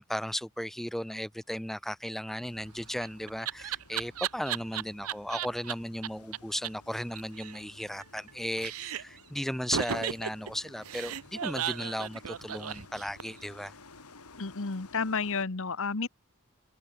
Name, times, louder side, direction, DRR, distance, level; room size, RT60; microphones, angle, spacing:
voice 1, 0.0-13.8, equal, ahead, 0.7 m, -36 dB
sound 1, 2.4-15.5, left 3 dB, 90° left, 2.8 m, -55 dB
Laughter, 2.6-5.7 6.0-6.1 6.3-6.4 6.6-6.7 7.0-8.3 8.6-9.2 9.7-13.5, right 9 dB, 70° right, 0.7 m, -35 dB
voice 2, 14.4-16.1, left 4 dB, 65° left, 1.2 m, -31 dB
head